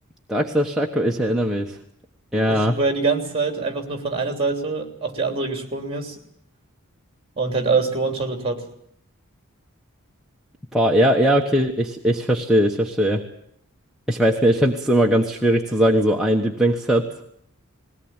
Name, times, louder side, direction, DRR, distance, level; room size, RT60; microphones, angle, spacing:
voice 1, 0.3-1.8 2.3-2.8 10.7-13.2 14.1-17.0, equal, ahead, -1 dB, 1.2 m, -19 dB
voice 2, 2.4-6.2 7.4-8.6, right 4 dB, 25° right, 5 dB, 3.2 m, -24 dB
20.5 x 18.0 x 9.0 m, 0.70 s
head